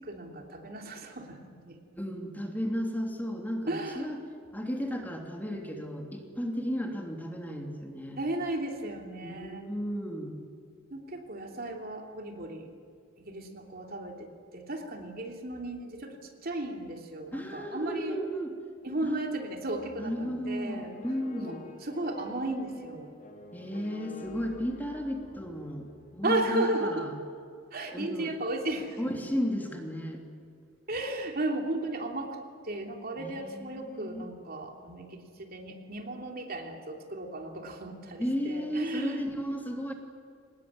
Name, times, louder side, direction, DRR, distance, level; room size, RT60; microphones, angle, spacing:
voice 1, 0.0-1.8 3.7-4.1 8.2-9.7 10.9-12.7 13.2-18.2 18.8-20.9 21.4-23.1 26.2-27.1 27.7-29.3 30.9-32.4 32.6-39.3, right 2 dB, 50° right, 3 dB, 3.0 m, -35 dB
voice 2, 2.0-4.2 4.5-8.2 9.2-10.4 17.3-18.5 19.0-19.2 20.0-21.6 23.5-25.9 26.1-27.1 27.9-28.3 29.0-30.2 33.2-34.2 38.2-39.9, equal, 10° left, 2 dB, 3.0 m, -34 dB
sound 1, 19.7-26.6, left 2 dB, 45° left, 2.3 m, -49 dB
24.5 x 20.0 x 9.8 m, 2.2 s
head